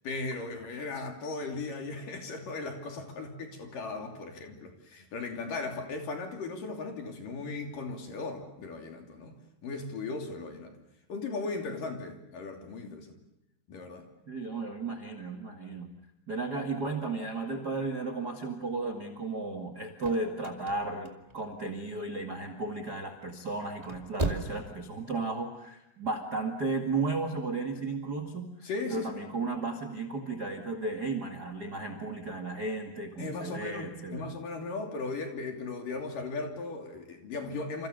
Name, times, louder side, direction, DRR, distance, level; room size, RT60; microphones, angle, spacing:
voice 1, 0.0-9.4 9.6-10.7 11.1-13.2 13.7-14.1 28.6-29.1 33.2-37.9, left 3 dB, 50° left, 3 dB, 4.3 m, -37 dB
voice 2, 14.3-15.9 16.3-28.5 28.9-34.2, right 3 dB, 40° right, 5 dB, 1.4 m, -34 dB
sound 1, 19.7-21.9 22.3-22.8 23.6-24.7 25.0-25.1, right 2 dB, 80° right, 0.3 m, -35 dB
29.5 x 28.5 x 6.7 m, 0.86 s
omnidirectional pair, 5.3 m